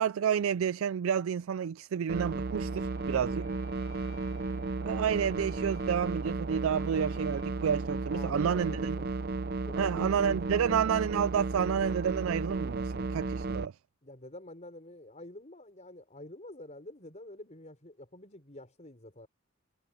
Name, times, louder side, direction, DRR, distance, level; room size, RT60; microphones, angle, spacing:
voice 1, 0.0-3.5 4.8-8.9 9.8-13.7, right 8 dB, 80° right, 0.4 m, -30 dB
sound 1, 2.1-13.7, right 3 dB, 50° right, 0.7 m, -34 dB
Bowed string instrument, 2.6-7.5, left 14 dB, 70° left, 3.9 m, -61 dB
voice 2, 8.1-9.1 9.6-10.8 14.0-19.3, left 1 dB, 35° left, 5.3 m, -47 dB
head